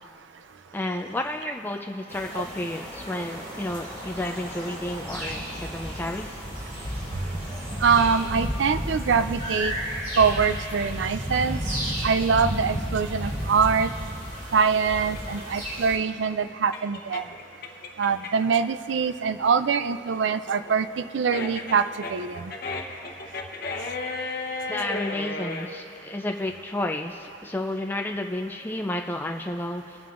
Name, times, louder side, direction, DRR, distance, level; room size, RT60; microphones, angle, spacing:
voice 1, 0.7-6.4 24.7-30.0, left 1 dB, 10° left, 2 dB, 0.4 m, -31 dB
sound 1, 2.1-15.9, equal, 40° right, 2.6 m, -33 dB
voice 2, 7.8-9.7 10.2-11.6 12.0-13.9 14.5-17.2 18.0-22.5, right 6 dB, 65° right, 12 dB, 0.4 m, -23 dB
sound 2, 15.1-18.5 18.9-25.7, left 3 dB, 55° left, 1.0 m, -34 dB
25.0 x 9.2 x 2.5 m, 2.9 s
head